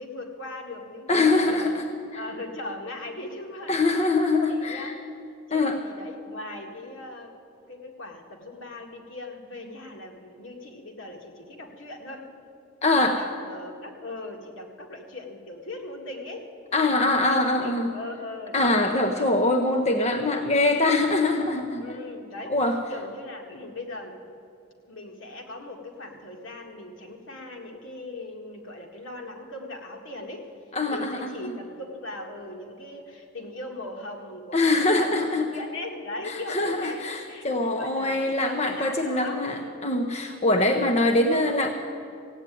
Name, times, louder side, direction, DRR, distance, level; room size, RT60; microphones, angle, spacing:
voice 1, 0.0-1.7 2.1-3.9 4.5-4.9 5.5-7.3 7.6-12.2 13.0-16.5 17.2-19.3 21.8-22.5 22.9-24.2 24.9-30.5 30.9-37.5 37.7-39.8 40.6-41.2, left 2 dB, 70° left, 1 dB, 1.8 m, -39 dB
voice 2, 1.1-1.8 2.1-2.2 3.7-4.9 5.5-5.8 12.8-13.2 16.7-17.9 18.5-21.8 22.5-22.8 30.7-31.6 34.5-35.5 36.2-41.7, left 2 dB, 35° left, 4 dB, 0.7 m, -23 dB
16.0 x 8.9 x 9.1 m, 2.4 s
head